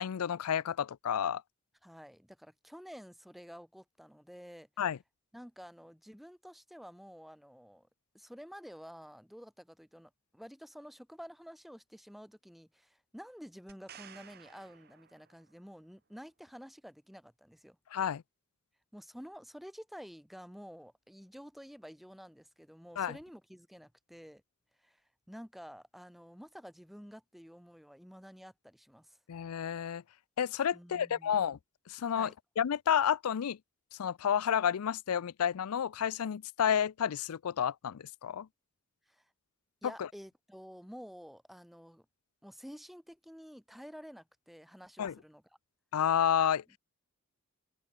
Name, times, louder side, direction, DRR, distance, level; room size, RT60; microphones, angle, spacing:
voice 1, 0.0-1.4 4.8-5.0 17.9-18.2 23.0-23.1 29.3-30.0 30.4-31.6 31.9-32.3 32.6-33.6 34.0-38.5 40.0-40.1 45.0-45.1 45.9-46.6, left 8 dB, 85° left, 0.4 m, -30 dB
voice 2, 1.8-4.7 5.3-7.9 8.1-17.8 18.9-24.4 24.8-25.0 25.3-29.2 30.7-31.4 32.1-32.3 39.1-39.3 39.8-42.0 42.4-45.4, equal, ahead, 1.7 m, -50 dB
sound 1, 13.7-15.7 19.3-19.4, right 8 dB, 45° right, 1.4 m, -55 dB
open air
head